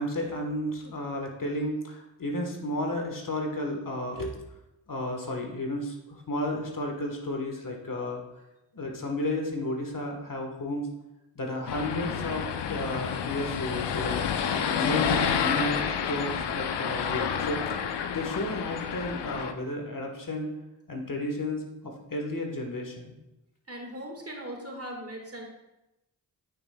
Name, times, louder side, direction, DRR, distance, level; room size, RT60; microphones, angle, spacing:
voice 1, 0.0-4.3 4.9-8.2 8.7-10.9 11.3-14.2 14.7-17.6 18.1-20.5 20.9-23.2, left 1 dB, 45° left, 2 dB, 1.4 m, -32 dB
sound 1, 11.7-19.5, left 7 dB, 65° left, 0.7 m, -29 dB
voice 2, 23.7-25.4, right 1 dB, 30° right, 1 dB, 1.8 m, -39 dB
9.5 x 5.3 x 2.3 m, 0.92 s
supercardioid pair, 40°, 44 cm